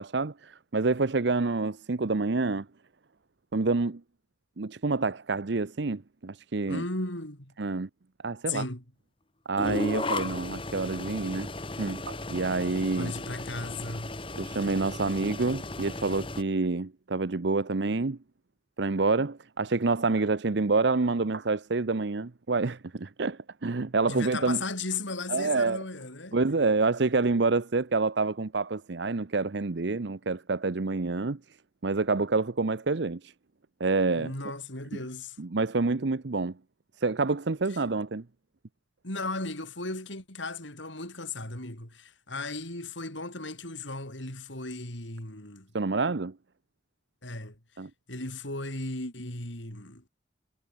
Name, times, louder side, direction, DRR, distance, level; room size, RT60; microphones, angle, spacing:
voice 1, 0.0-2.7 3.5-4.0 4.6-6.8 7.6-7.9 8.2-8.7 9.5-11.5 11.8-13.1 14.4-18.2 18.8-24.6 25.3-25.8 26.3-31.4 31.8-33.3 33.8-34.3 35.4-36.5 37.0-38.2 45.7-46.3 47.8-47.9, right 3 dB, 65° right, 0.7 m, -27 dB
voice 2, 6.7-7.5 8.5-8.8 12.9-14.1 24.1-26.4 34.2-35.4 37.7-37.8 39.0-45.7 47.2-47.6 48.1-50.0, left 3 dB, 75° left, 7.6 m, -36 dB
sound 1, 9.6-16.4, left 2 dB, 25° left, 2.0 m, -35 dB
head